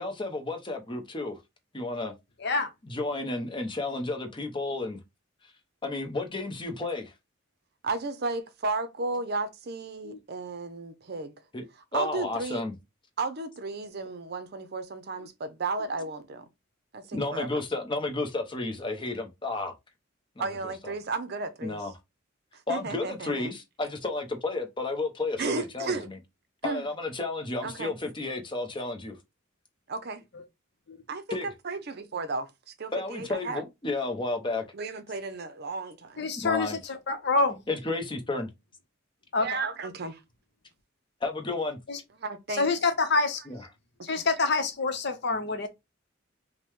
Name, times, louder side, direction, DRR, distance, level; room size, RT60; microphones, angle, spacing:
voice 1, 0.0-1.4 1.7-2.1 2.9-5.0 5.8-7.1 11.5-11.6 11.9-12.7 17.1-19.7 20.4-20.9 21.6-21.9 22.7-26.2 26.6-29.2 31.3-31.5 32.9-34.6 36.4-36.8 37.7-38.5 41.2-41.8 43.5-43.6, left 2 dB, 25° left, 0.8 m, -32 dB
voice 2, 7.8-11.3 11.9-12.6 13.2-16.5 16.9-17.6 20.4-21.8 22.5-23.5 25.4-26.1 26.6-26.8 27.6-27.9 29.9-30.2 31.1-32.5 32.8-33.6 34.7-36.3 39.4-40.2 42.2-42.7 44.0-44.1, right 3 dB, 50° right, 0.6 m, -34 dB
voice 3, 36.2-37.6 39.3-39.5 41.9-42.0 42.5-43.4 44.0-45.7, left 3 dB, 55° left, 0.8 m, -27 dB
5.3 x 2.2 x 3.0 m
head